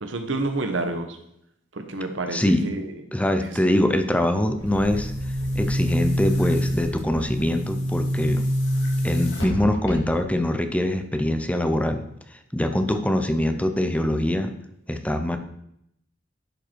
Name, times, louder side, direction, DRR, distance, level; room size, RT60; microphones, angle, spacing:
voice 1, 0.0-1.2 1.7-2.9 3.4-3.6, right 2 dB, 85° right, 6 dB, 1.2 m, -29 dB
voice 2, 2.3-2.6 3.1-5.1 5.5-8.4 9.0-12.0 12.5-14.5 14.9-15.4, left 1 dB, 5° left, 7 dB, 0.7 m, -23 dB
Boom, 4.6-10.4, equal, 65° left, 2.5 m, -26 dB
11.0 x 5.3 x 4.6 m, 0.76 s
head